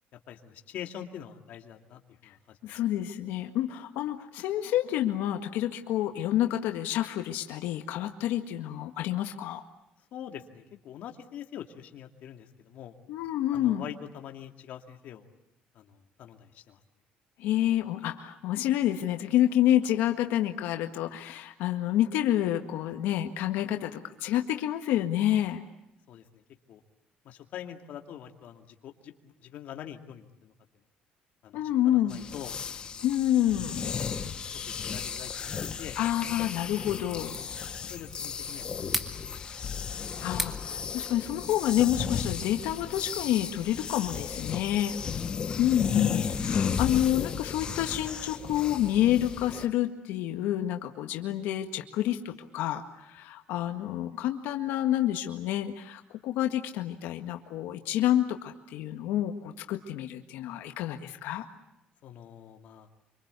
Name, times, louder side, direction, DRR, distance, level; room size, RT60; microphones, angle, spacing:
voice 1, 0.3-2.8 10.1-12.9 13.5-15.3 15.7-16.8 26.1-26.4 26.7-26.8 27.2-30.5 31.4-32.9 34.0-34.2 34.8-36.0 37.8-38.9 62.0-62.9, left 10 dB, 55° left, 3 dB, 2.4 m, -44 dB
voice 2, 2.6-9.6 13.1-13.9 17.4-25.6 31.5-32.2 33.0-33.8 36.0-37.4 40.2-45.0 45.6-61.4, left 12 dB, 90° left, 5 dB, 1.8 m, -28 dB
sound 1, 32.1-49.7, left 6 dB, 30° left, 1.1 m, -34 dB
sound 2, 33.5-42.0, right 1 dB, 5° right, 1.8 m, -42 dB
26.5 x 25.5 x 8.3 m, 0.84 s
cardioid pair, 180°, 3 cm